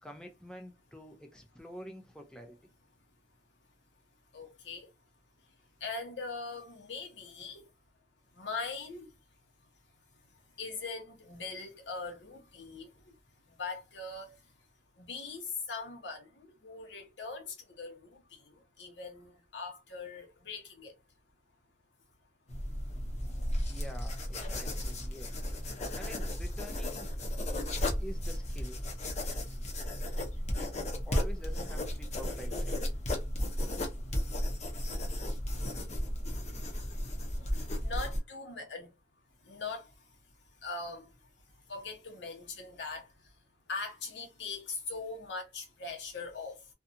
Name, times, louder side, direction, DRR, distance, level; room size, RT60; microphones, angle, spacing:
voice 1, 0.0-2.6 23.7-25.4 25.9-27.1 28.0-28.8 30.6-30.7 31.1-32.8, equal, 5° left, 0.4 m, -47 dB
voice 2, 4.3-4.9 5.8-7.7 8.3-9.1 10.5-13.1 13.5-14.4 15.0-20.9 27.3-27.9 29.1-29.7 30.0-30.2 37.4-38.9 39.4-40.1 40.6-41.1 41.5-43.3 43.7-46.7, left 4 dB, 80° left, 0.9 m, -41 dB
sound 1, 22.5-38.2, left 1 dB, 40° left, 0.7 m, -34 dB
2.6 x 2.3 x 2.6 m
head